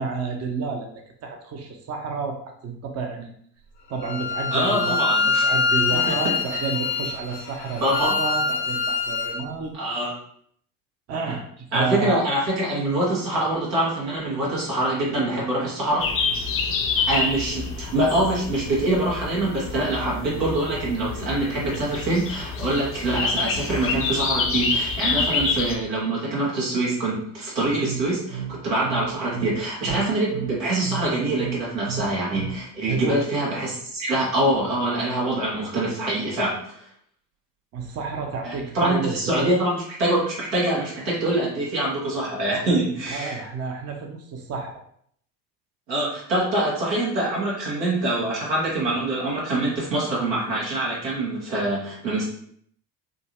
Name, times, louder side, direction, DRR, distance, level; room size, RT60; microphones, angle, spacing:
voice 1, 0.0-3.3 3.9-9.7 11.1-11.5 11.7-12.2 32.9-33.2 37.7-39.6 43.1-44.8, right 4 dB, 30° right, 3 dB, 0.6 m, -30 dB
Bowed string instrument, 4.0-9.4, left 4 dB, 80° left, 0.8 m, -24 dB
voice 2, 4.5-5.4 6.1-6.2 6.5-6.6 7.8-8.2 9.7-10.1 11.7-16.1 17.1-36.6 38.4-43.4 45.9-52.2, right 1 dB, 85° right, -5 dB, 1.2 m, -24 dB
sound 1, 16.0-25.8, left 4 dB, 30° left, 0.4 m, -27 dB
sound 2, 27.6-32.6, right 10 dB, 55° right, 0.8 m, -33 dB
3.7 x 2.0 x 2.5 m, 0.65 s
hypercardioid pair, 60°, 49 cm